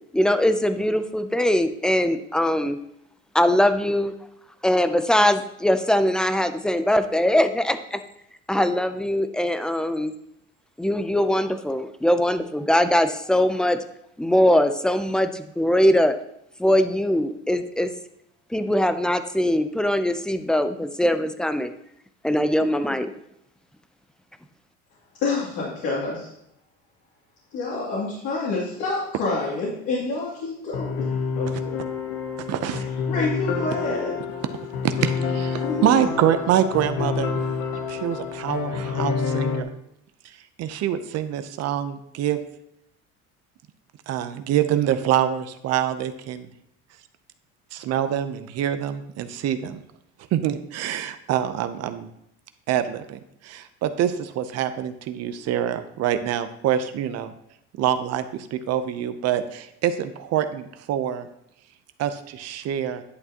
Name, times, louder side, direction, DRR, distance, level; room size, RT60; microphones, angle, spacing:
voice 1, 0.1-2.8 3.3-4.1 4.6-8.0 8.5-10.1 10.8-13.8 14.2-16.1 16.6-17.9 18.5-21.7 22.2-23.1, left 1 dB, 5° left, 10 dB, 0.5 m, -21 dB
voice 2, 25.2-26.3 27.5-30.9 31.4-31.8 32.7-32.8 33.1-34.1 35.6-36.0, left 3 dB, 70° left, -7 dB, 2.6 m, -28 dB
sound 1, 30.7-39.6, left 5 dB, 90° left, 1.0 m, -28 dB
voice 3, 32.5-32.8 34.8-37.3 37.9-39.7 40.6-42.4 44.1-46.5 47.7-49.8 50.3-52.1 52.7-57.3 57.8-61.3 62.0-63.0, right 10 dB, 60° right, 10 dB, 0.8 m, -25 dB
11.0 x 6.7 x 2.9 m, 0.78 s
cardioid pair, 115°, 29 cm